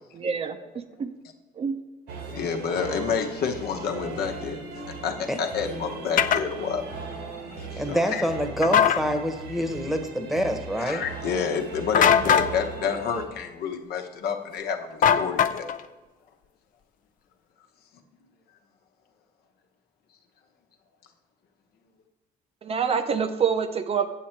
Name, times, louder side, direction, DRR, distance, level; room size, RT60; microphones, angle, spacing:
voice 1, 0.1-1.1 1.6-1.8 22.6-24.1, right 6 dB, 35° right, 8 dB, 0.6 m, -26 dB
sound 1, 2.1-13.3, right 4 dB, 85° right, 1.7 m, -38 dB
voice 2, 2.3-4.6 4.9-6.9 7.6-8.2 10.8-15.7, left 6 dB, 70° left, 4 dB, 1.0 m, -29 dB
sound 2, 6.2-6.4 8.6-9.0 11.9-12.5 15.0-15.8, left 8 dB, 50° left, 0.5 m, -19 dB
voice 3, 7.8-11.0, equal, ahead, 5 dB, 1.0 m, -26 dB
7.6 x 7.5 x 4.4 m, 1.2 s
cardioid pair, 110°, 17 cm